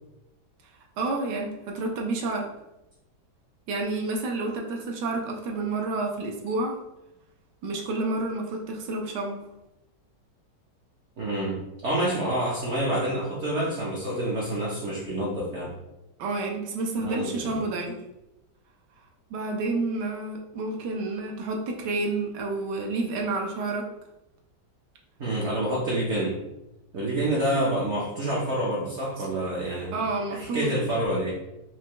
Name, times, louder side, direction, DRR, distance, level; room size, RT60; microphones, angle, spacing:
voice 1, 1.0-2.5 3.7-6.8 7.6-9.4 16.2-18.0 19.3-23.8 29.2-29.3 29.9-30.7, right 2 dB, 80° right, 1 dB, 1.2 m, -29 dB
voice 2, 11.2-15.7 17.0-17.6 25.2-26.4 26.9-30.0 30.3-31.3, right 1 dB, 60° right, -4 dB, 0.7 m, -28 dB
4.6 x 2.1 x 2.9 m, 0.92 s
omnidirectional pair, 1.9 m